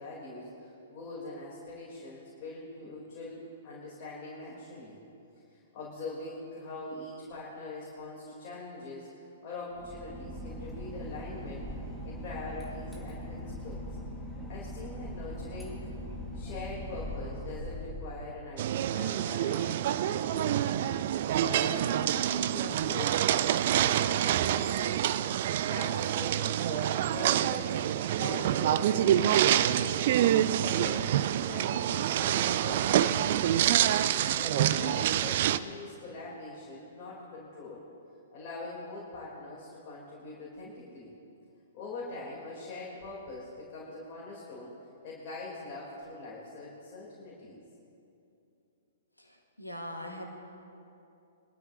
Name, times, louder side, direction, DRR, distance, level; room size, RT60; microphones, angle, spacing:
voice 1, 0.0-5.0 5.5-9.1 9.4-11.7 12.0-13.9 14.5-15.9 16.3-19.8 20.0-24.9 25.4-33.7 34.3-37.8 38.3-41.1 41.7-44.7 45.0-47.6, left 2 dB, 35° left, -6 dB, 3.8 m, -43 dB
Boat Water vehicle / Engine, 9.7-18.7, equal, ahead, 2.0 m, -40 dB
sound 1, 18.6-35.6, right 11 dB, 45° right, 0.4 m, -27 dB
voice 2, 49.2-50.2, equal, 85° left, 2 dB, 1.8 m, -41 dB
23.0 x 13.0 x 2.9 m, 2.7 s
figure-of-eight pair, 115°, 0 cm